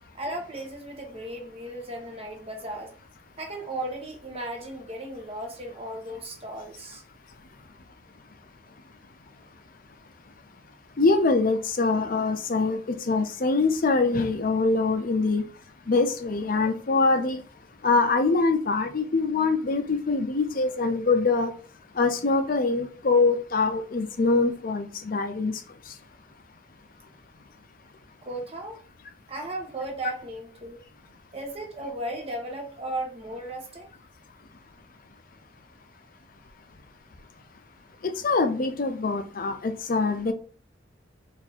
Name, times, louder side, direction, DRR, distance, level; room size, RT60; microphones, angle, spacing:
voice 1, 0.1-2.9 3.4-7.0 28.2-28.8 29.3-30.8 31.3-33.9, right 1 dB, 30° right, 2 dB, 1.1 m, -35 dB
voice 2, 11.0-12.8 13.1-15.4 15.9-17.4 17.8-21.5 22.0-25.6 38.0-40.3, left 3 dB, 45° left, 6 dB, 0.5 m, -24 dB
4.3 x 2.6 x 4.1 m, 0.40 s
head